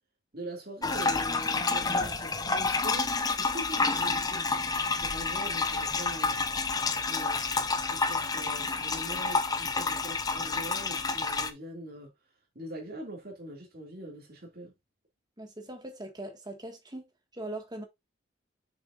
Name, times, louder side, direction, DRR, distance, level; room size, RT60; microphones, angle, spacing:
voice 1, 0.3-4.5 5.0-6.4 7.1-12.1 12.5-14.7, right 1 dB, 50° right, 2.4 m, -43 dB
sound 1, 0.8-11.5, left 4 dB, 20° left, 0.6 m, -29 dB
voice 2, 15.4-17.8, right 1 dB, 20° right, 1.7 m, -41 dB
6.8 x 6.3 x 2.5 m
head